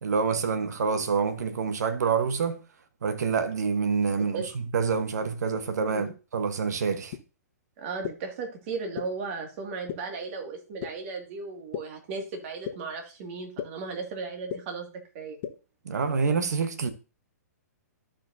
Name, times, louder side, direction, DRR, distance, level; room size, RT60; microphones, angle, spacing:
voice 1, 0.0-2.6 3.0-7.1 15.8-16.9, right 5 dB, 80° right, 1.1 m, -27 dB
sound 1, 7.1-7.2 8.0-8.1 9.0-9.1 9.9-10.0 10.8-10.9 11.7-11.8 12.7-12.8 13.6-13.7 14.5-14.6 15.4-15.5, left 10 dB, 50° left, 1.2 m, -32 dB
voice 2, 7.8-14.9 15.1-15.4, right 4 dB, 45° right, 2.1 m, -36 dB
14.0 x 5.1 x 2.7 m
hypercardioid pair, 135°, 9 cm